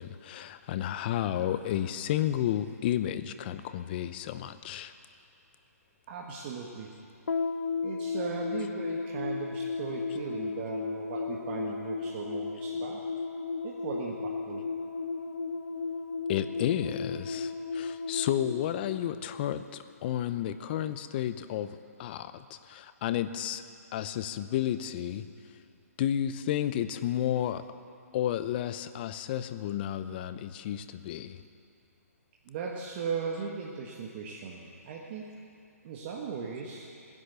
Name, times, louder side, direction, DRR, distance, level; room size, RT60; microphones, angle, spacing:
voice 1, 0.0-4.9 16.3-23.6 23.9-25.3 26.0-27.6 28.1-31.4, left 11 dB, 40° left, 12 dB, 0.7 m, -32 dB
voice 2, 6.1-6.9 7.8-13.0 13.6-14.6 32.4-35.3 35.8-36.9, right 5 dB, 40° right, -2 dB, 1.6 m, -38 dB
sound 1, 7.3-19.8, left 4 dB, 85° left, 1.0 m, -35 dB
17.5 x 10.5 x 6.9 m, 2.5 s
hypercardioid pair, 140°, 9 cm